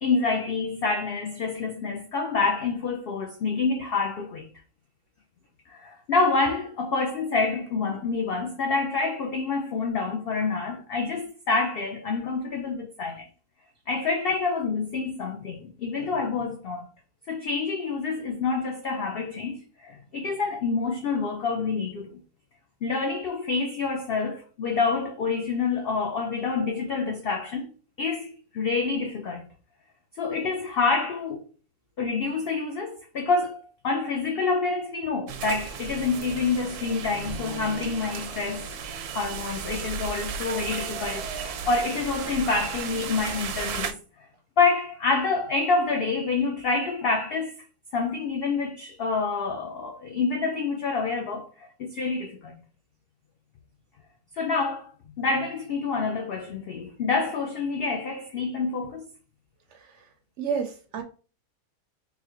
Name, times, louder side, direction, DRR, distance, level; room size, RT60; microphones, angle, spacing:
voice 1, 0.0-4.5 5.7-13.3 13.9-16.9 17.3-22.2 22.8-29.5 30.2-31.5 32.0-38.7 39.1-44.0 44.6-47.6 47.9-52.5 54.4-54.9 55.2-59.1, left 4 dB, 75° left, 0.5 m, -27 dB
sound 1, 35.3-43.9, right 6 dB, 90° right, 1.1 m, -35 dB
voice 2, 59.7-60.1 60.4-61.0, right 6 dB, 65° right, 0.7 m, -31 dB
3.9 x 2.7 x 2.9 m
omnidirectional pair, 1.5 m